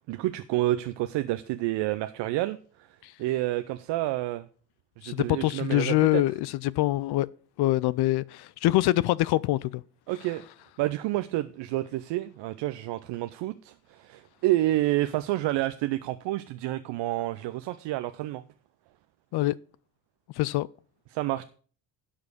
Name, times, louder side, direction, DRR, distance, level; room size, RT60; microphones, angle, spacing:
voice 1, 0.1-2.6 3.2-4.5 5.0-6.2 10.1-10.4 10.8-18.4 21.1-21.4, right 16 dB, 65° right, 0.7 m, -29 dB
voice 2, 5.0-7.3 7.6-9.8 19.3-19.6 20.3-20.7, left 17 dB, 60° left, 0.5 m, -25 dB
11.0 x 5.1 x 6.5 m
hypercardioid pair, 45°, 46 cm